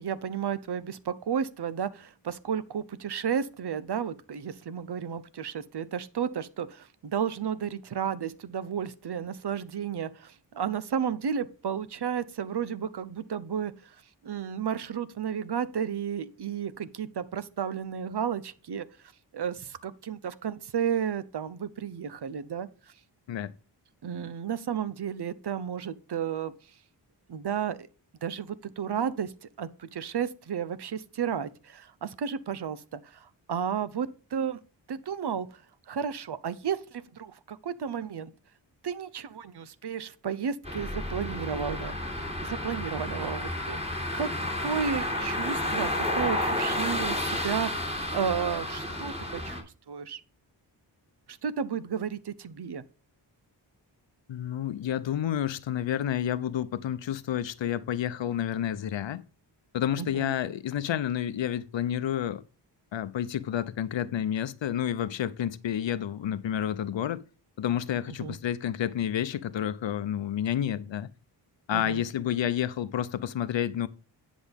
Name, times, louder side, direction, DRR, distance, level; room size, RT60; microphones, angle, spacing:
voice 1, 0.0-13.7 14.2-18.8 19.3-22.7 24.0-26.5 27.3-27.9 28.2-34.6 34.9-35.5 35.9-38.3 38.8-43.8 44.1-44.3 44.6-50.2 51.3-52.8 60.0-60.3 68.2-68.4 71.7-72.0, right 7 dB, 65° right, 0.8 m, -32 dB
sound 1, 40.6-49.6, left 1 dB, 15° right, 3.8 m, -31 dB
voice 2, 54.3-59.2 59.7-62.4 62.9-67.2 67.6-71.1 71.7-73.9, left 10 dB, 80° left, 0.7 m, -30 dB
10.5 x 6.1 x 3.5 m
wide cardioid pair, 85°, 44 cm